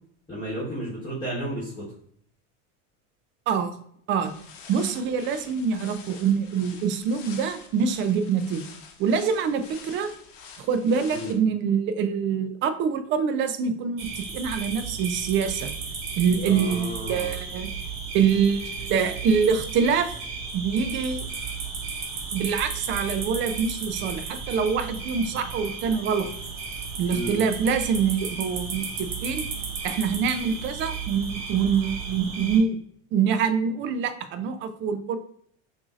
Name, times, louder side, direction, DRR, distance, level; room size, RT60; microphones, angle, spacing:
voice 1, 0.3-1.8 11.1-11.4 16.4-17.3 27.1-27.4, right 1 dB, 10° left, -8 dB, 1.3 m, -32 dB
Walking Through Dead Leaves, 4.2-11.3, left 6 dB, 70° left, 0.9 m, -46 dB
voice 2, 4.7-8.7 9.0-10.1 10.6-15.7 16.2-17.7 18.1-20.1 20.5-21.2 22.3-26.3 27.0-29.4 29.8-32.8 33.1-35.2, right 6 dB, 30° right, 9 dB, 0.4 m, -25 dB
sound 1, 14.0-32.6, right 5 dB, 50° right, 1.3 m, -34 dB
5.9 x 2.7 x 2.4 m, 0.66 s
supercardioid pair, 135°, 40 cm